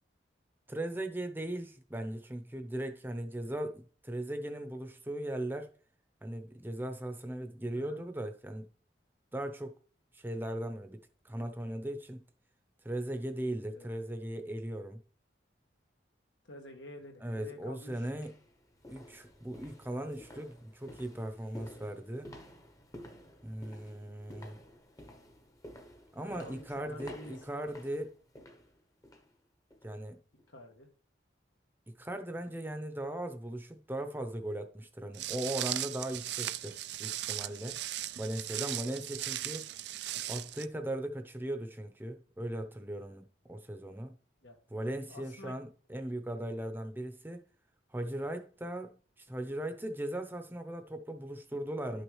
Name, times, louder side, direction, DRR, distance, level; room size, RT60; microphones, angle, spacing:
voice 1, 0.7-5.7 6.2-8.7 9.3-9.8 10.1-12.2 12.8-15.0 17.2-18.3 18.9-22.3 23.4-24.6 26.1-28.1 29.8-30.2 32.0-37.8 38.2-39.7 40.3-44.1 44.7-47.4 47.9-52.0, right 1 dB, 10° right, 0.8 m, -38 dB
voice 2, 16.5-18.1 26.3-27.6 30.5-30.9 44.4-44.6 45.1-45.6, left 1 dB, 90° left, 2.0 m, -50 dB
sound 1, 18.1-29.3 29.7-29.9 30.4-30.5, equal, 20° left, 0.9 m, -52 dB
Walk footsteps, 35.1-40.6, right 14 dB, 70° right, 0.4 m, -38 dB
11.5 x 6.3 x 3.2 m
head